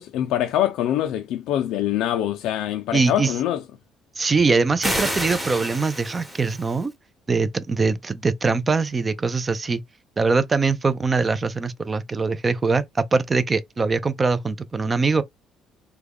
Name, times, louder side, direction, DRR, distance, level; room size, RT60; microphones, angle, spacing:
voice 1, 0.0-3.6, left 12 dB, 80° left, 0.3 m, -24 dB
voice 2, 2.9-3.3 4.2-6.9 7.3-9.8 10.2-12.8 13.1-15.2, right 4 dB, 25° right, 0.4 m, -22 dB
sound 1, 4.8-6.8, equal, 10° right, 1.0 m, -29 dB
3.5 x 2.2 x 3.4 m
cardioid pair, 120°, 0 cm